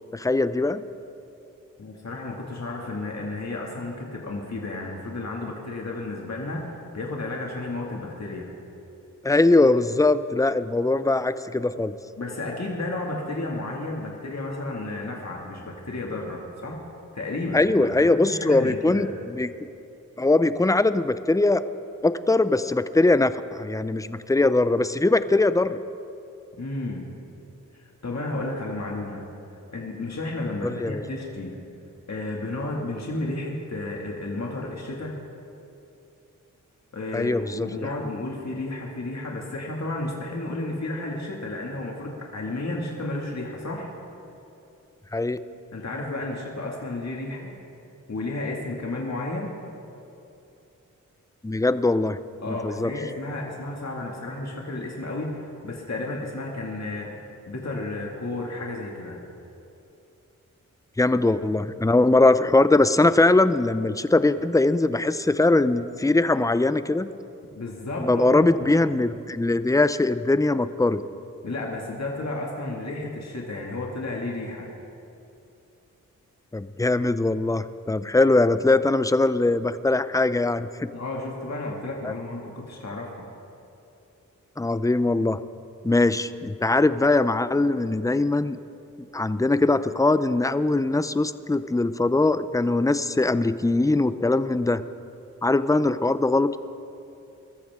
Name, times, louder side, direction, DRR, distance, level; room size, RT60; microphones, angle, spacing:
voice 1, 0.1-0.8 9.2-11.9 17.5-19.1 19.4-19.5 20.2-21.6 22.0-25.8 30.6-31.0 37.1-37.9 45.1-45.4 51.4-52.2 52.5-52.9 61.0-67.1 68.0-71.0 76.5-80.9 82.0-82.1 84.6-85.4 85.8-88.6 89.1-94.8 95.4-96.6, left 2 dB, 10° left, 13 dB, 0.6 m, -21 dB
voice 2, 1.8-8.5 12.2-16.8 17.1-19.0 26.6-27.1 27.8-29.2 29.7-31.6 32.1-35.2 36.9-43.9 45.7-47.5 48.1-49.5 52.4-59.2 67.5-68.5 71.4-74.7 80.9-83.2, left 2 dB, 55° left, -2 dB, 2.3 m, -32 dB
23.0 x 13.5 x 3.7 m, 2.7 s
cardioid pair, 50°, 33 cm